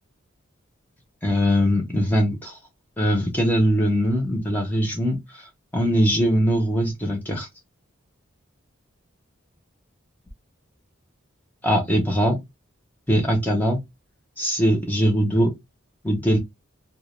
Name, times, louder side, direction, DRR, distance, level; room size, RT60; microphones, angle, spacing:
voice 1, 1.2-2.6 3.0-7.5 11.6-12.4 13.1-13.8 14.4-15.5 16.0-16.4, equal, 10° left, 0.5 m, -21 dB
2.2 x 2.0 x 3.0 m
head